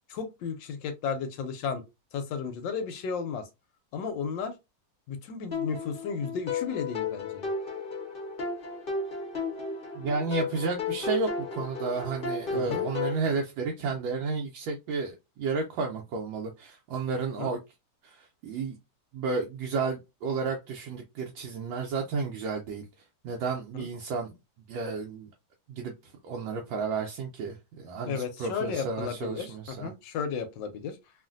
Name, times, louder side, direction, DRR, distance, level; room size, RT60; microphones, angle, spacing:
voice 1, 0.1-1.8 2.1-3.5 3.9-4.5 5.1-7.5 12.5-12.8 17.4-17.5 23.8-23.9 28.0-31.0, left 6 dB, 75° left, 1.2 m, -34 dB
sound 1, 5.5-13.2, left 4 dB, 40° left, 0.8 m, -33 dB
voice 2, 9.9-17.6 18.0-18.8 19.1-22.8 23.2-24.3 24.7-25.3 25.7-29.9, right 4 dB, 75° right, 1.3 m, -32 dB
3.1 x 2.5 x 2.4 m
omnidirectional pair, 2.1 m